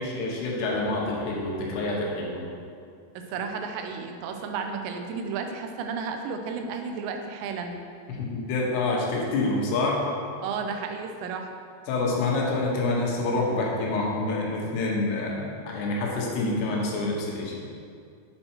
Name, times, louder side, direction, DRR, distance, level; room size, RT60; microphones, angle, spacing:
voice 1, 0.0-2.4 8.2-10.0 11.9-17.5, left 2 dB, 75° left, -2 dB, 3.0 m, -27 dB
voice 2, 3.2-7.8 10.4-11.5, right 5 dB, 90° right, 5 dB, 2.9 m, -33 dB
7.6 x 4.4 x 4.4 m, 2.3 s
omnidirectional pair, 5.0 m